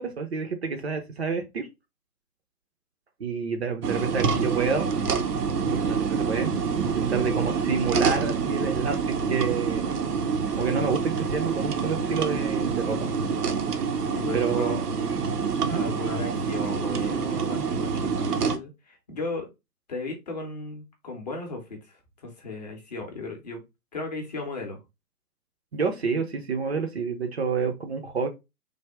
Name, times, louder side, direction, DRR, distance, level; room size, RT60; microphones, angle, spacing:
voice 1, 0.0-1.7 3.2-4.9 5.7-6.5 6.9-10.0 10.6-13.1 14.3-14.8 15.6-15.8 25.7-28.3, right 5 dB, 45° right, 0.5 m, -28 dB
sound 1, 3.8-18.6, right 5 dB, 80° right, 0.7 m, -27 dB
voice 2, 14.1-14.9 15.7-19.5 19.9-23.6 23.9-24.8, left 3 dB, 25° left, 0.6 m, -36 dB
3.3 x 2.1 x 3.4 m
figure-of-eight pair, 135°, 47 cm